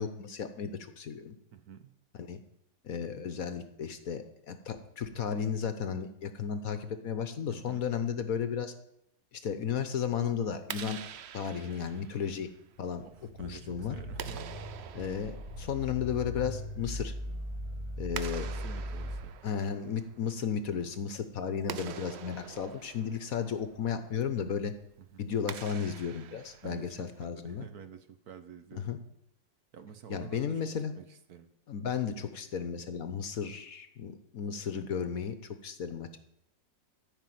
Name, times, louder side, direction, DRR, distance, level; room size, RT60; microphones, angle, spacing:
voice 1, 0.0-1.3 2.2-2.4 2.8-8.7 9.3-11.0 11.3-12.5 12.8-13.1 13.4-14.0 14.9-17.1 18.0-18.5 19.4-24.7 25.2-27.7 28.7-29.0 30.1-30.9 31.7-35.3 35.6-36.2, left 7 dB, 60° left, 10 dB, 1.2 m, -34 dB
voice 2, 1.5-1.9 7.5-7.9 13.0-14.4 18.5-19.4 25.0-25.2 26.6-28.9 29.7-31.5, right 8 dB, 60° right, 9 dB, 1.3 m, -49 dB
Clapping, 10.5-27.3, right 9 dB, 80° right, 0.5 m, -47 dB
sound 1, 13.2-19.3, left 1 dB, 35° right, 6.0 m, -39 dB
13.5 x 5.8 x 9.3 m, 0.77 s
omnidirectional pair, 1.9 m